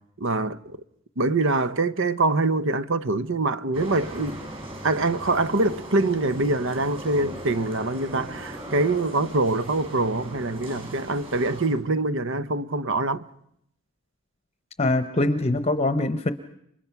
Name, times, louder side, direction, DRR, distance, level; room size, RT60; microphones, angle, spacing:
voice 1, 0.2-0.8 1.2-4.4 4.8-13.2, right 2 dB, 60° right, 0.9 m, -24 dB
sound 1, 3.7-11.7, right 1 dB, 25° right, 7.5 m, -38 dB
voice 2, 14.8-16.3, left 2 dB, 30° left, 0.9 m, -23 dB
29.5 x 25.5 x 5.9 m
head